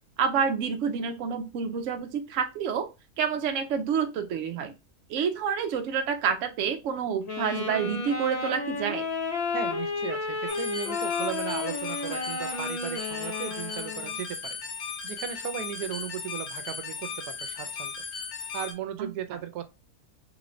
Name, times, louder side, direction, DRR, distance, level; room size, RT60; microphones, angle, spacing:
voice 1, 0.2-2.9 3.2-4.7 5.1-9.0 19.0-19.1, right 7 dB, 65° right, 0.9 m, -28 dB
Wind instrument woodwind instrument, 7.2-14.2, left 4 dB, 35° left, 0.7 m, -32 dB
voice 2, 9.5-14.6 15.0-18.0 18.3-19.7, right 10 dB, 90° right, 1.1 m, -36 dB
sound 1, 10.5-18.7, left 6 dB, 80° left, 1.3 m, -37 dB
3.5 x 3.0 x 2.5 m
omnidirectional pair, 1.6 m